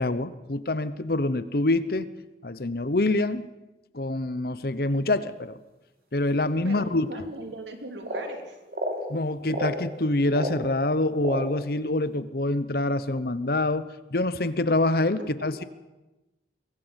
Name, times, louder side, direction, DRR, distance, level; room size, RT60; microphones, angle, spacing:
voice 1, 0.0-2.1 2.4-3.5 3.9-5.5 6.1-7.1 9.1-15.6, left 2 dB, 55° left, 14 dB, 0.9 m, -26 dB
voice 2, 6.6-8.6 15.2-15.5, right 2 dB, 80° right, 5 dB, 3.4 m, -39 dB
sound 1, 8.0-8.3 8.7-9.0 9.5-9.8 10.3-10.6 11.2-11.5, equal, 55° right, 3.7 m, -30 dB
23.5 x 17.5 x 8.1 m, 1.0 s
head